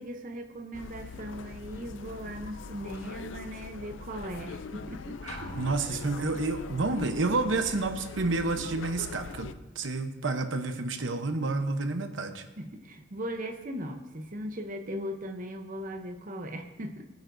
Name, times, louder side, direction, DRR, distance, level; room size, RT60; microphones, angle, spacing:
voice 1, 0.0-5.6 12.6-17.1, equal, 45° right, 6 dB, 0.8 m, -38 dB
sound 1, 0.7-9.5, left 4 dB, 80° left, 0.5 m, -42 dB
voice 2, 5.2-9.5 9.8-12.4, right 3 dB, 80° right, 7 dB, 0.9 m, -29 dB
sound 2, 5.3-6.7, equal, 40° left, 1.4 m, -45 dB
21.5 x 9.2 x 2.6 m, 1.1 s
head